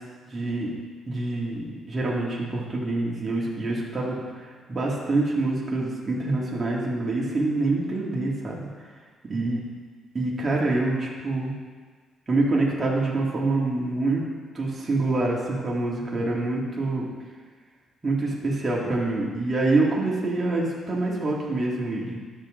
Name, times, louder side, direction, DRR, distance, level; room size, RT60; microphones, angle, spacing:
voice 1, 0.3-0.7 1.1-8.7 9.3-9.6 10.1-11.5 12.3-14.2 14.5-17.0 18.0-22.2, right 2 dB, 30° right, -4 dB, 2.3 m, -26 dB
11.5 x 6.8 x 3.8 m, 1.5 s
cardioid pair, 90°, 0 cm